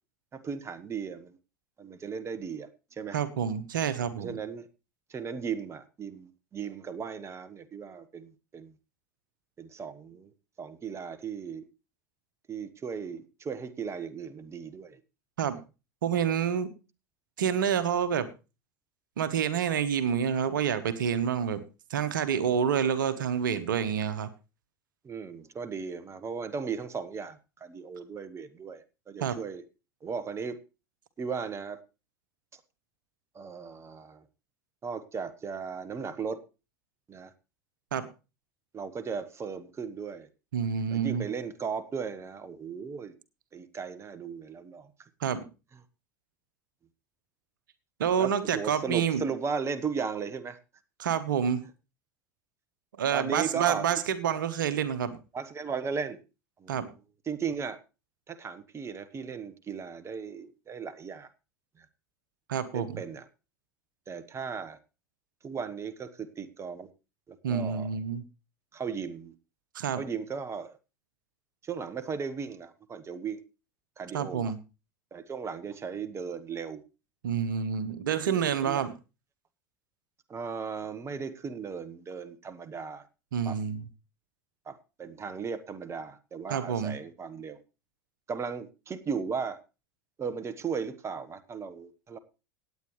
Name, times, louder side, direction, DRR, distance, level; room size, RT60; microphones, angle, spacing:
voice 1, 0.3-1.4 1.8-3.2 4.2-4.7 5.1-8.8 9.6-10.3 10.6-11.7 12.5-15.0 25.0-29.6 30.0-30.6 31.2-31.8 33.3-34.2 34.8-36.4 37.1-37.3 38.7-40.3 40.9-43.1 43.5-44.9 48.2-50.6 53.1-53.9 55.3-56.2 56.6-56.8 57.3-57.8 58.3-61.3 61.8-61.9 62.7-63.2 64.1-64.8 65.4-66.9 67.3-67.9 68.7-69.3 69.9-70.8 71.6-73.4 74.0-74.5 75.1-76.8 78.1-78.9 80.3-83.0 83.4-83.6 84.7-87.6 88.3-89.6 90.2-92.2, right 6 dB, 25° right, 13 dB, 1.3 m, -36 dB
voice 2, 3.1-4.3 15.4-15.6 16.0-16.7 17.4-18.3 19.2-21.6 21.9-24.3 29.2-29.4 37.9-38.1 40.5-41.3 45.2-45.4 48.0-49.2 51.0-51.6 53.0-55.2 56.7-56.9 62.5-63.0 67.4-68.2 69.7-70.0 74.1-74.6 77.2-78.9 83.3-83.8 86.5-87.0, right 8 dB, 80° right, 13 dB, 1.2 m, -28 dB
18.0 x 8.9 x 3.2 m, 0.30 s
hypercardioid pair, 85°, 11 cm